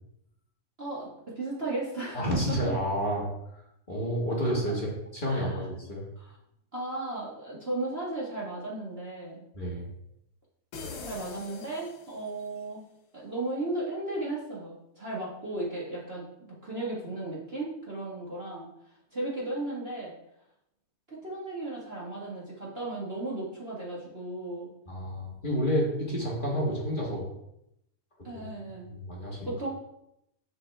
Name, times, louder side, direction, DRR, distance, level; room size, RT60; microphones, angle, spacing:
voice 1, 0.8-2.6 5.3-5.6 6.2-6.3 6.7-9.4 11.0-12.8 13.1-18.7 19.1-20.1 21.1-24.7 28.2-28.9 29.4-29.7, right 2 dB, 40° right, -6 dB, 0.8 m, -35 dB
voice 2, 2.1-3.3 3.5-3.6 3.9-6.0 9.5-9.9 24.9-27.3 28.3-28.5 28.8-29.5, equal, 35° left, -4 dB, 0.8 m, -30 dB
sound 1, 10.7-12.5, left 4 dB, 65° left, 1.4 m, -42 dB
7.3 x 6.2 x 3.3 m, 0.80 s
omnidirectional pair, 3.3 m